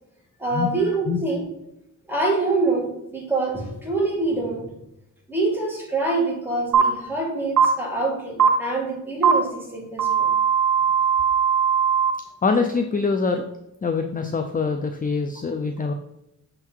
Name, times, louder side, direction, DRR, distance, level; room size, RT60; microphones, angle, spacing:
voice 1, 0.4-1.5 2.1-4.7 5.3-10.3, right 2 dB, 5° right, -2 dB, 2.0 m, -25 dB
sound 1, 6.7-6.8 7.6-7.7 8.4-8.5 9.2-9.3 10.0-12.1, right 7 dB, 80° right, 1.3 m, -18 dB
voice 2, 12.4-13.4 13.8-15.9, left 4 dB, 25° left, 6 dB, 0.5 m, -24 dB
6.6 x 3.8 x 4.6 m, 0.85 s
wide cardioid pair, 100°, 31 cm